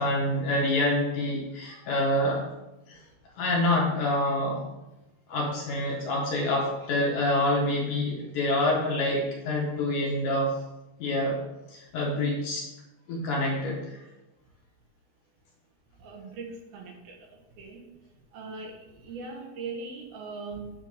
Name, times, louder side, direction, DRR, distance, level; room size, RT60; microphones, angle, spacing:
voice 1, 0.0-2.5 2.9-3.0 3.4-4.6 5.3-10.6 11.0-11.4 11.7-12.7 13.1-14.0, left 1 dB, 60° left, -2 dB, 2.4 m, -27 dB
voice 2, 16.0-17.8 18.3-20.7, right 4 dB, 75° right, 1 dB, 3.2 m, -40 dB
9.3 x 4.4 x 6.6 m, 0.98 s
omnidirectional pair, 4.6 m